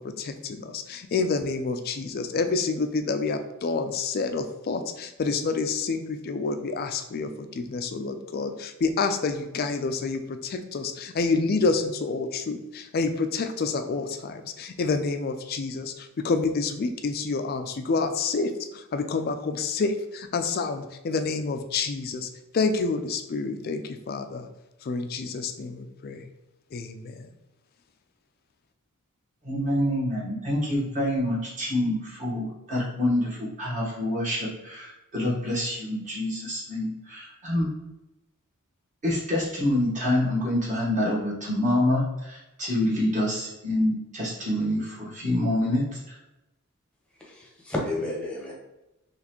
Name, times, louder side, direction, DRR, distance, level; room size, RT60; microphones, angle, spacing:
voice 1, 0.2-18.5 18.9-22.3 22.5-24.5 24.9-26.2 26.7-27.1, left 4 dB, 45° left, 8 dB, 0.3 m, -28 dB
voice 2, 29.4-37.7 39.0-46.2, left 1 dB, 35° right, -5 dB, 1.3 m, -27 dB
voice 3, 47.2-48.5, left 1 dB, 5° left, -3 dB, 0.8 m, -31 dB
4.1 x 3.1 x 3.0 m, 0.96 s
head